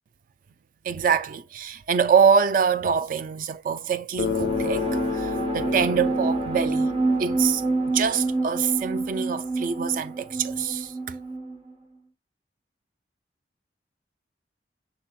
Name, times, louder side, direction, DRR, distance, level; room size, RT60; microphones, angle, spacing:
voice 1, 0.8-6.9 7.2-11.1, right 6 dB, 50° right, 0.3 m, -25 dB
sound 1, 4.1-11.7, right 2 dB, 30° right, 0.7 m, -27 dB
Bass guitar, 4.2-8.2, left 7 dB, 55° left, 0.3 m, -31 dB
6.0 x 3.4 x 2.2 m
head